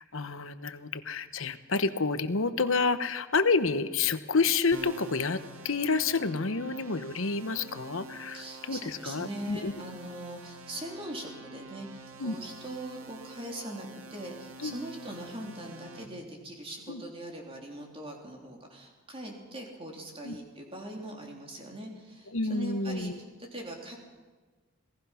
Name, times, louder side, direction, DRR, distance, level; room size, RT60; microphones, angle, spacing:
voice 1, 0.0-9.7 12.2-12.3 14.6-14.7 16.9-17.0 20.2-20.4 22.3-23.2, left 4 dB, 65° left, 11 dB, 1.0 m, -29 dB
sound 1, 4.7-16.1, right 3 dB, 70° right, 1.9 m, -47 dB
voice 2, 8.3-23.1 23.4-24.0, right 1 dB, 25° right, 0 dB, 3.3 m, -41 dB
27.0 x 18.0 x 5.8 m, 1.3 s
head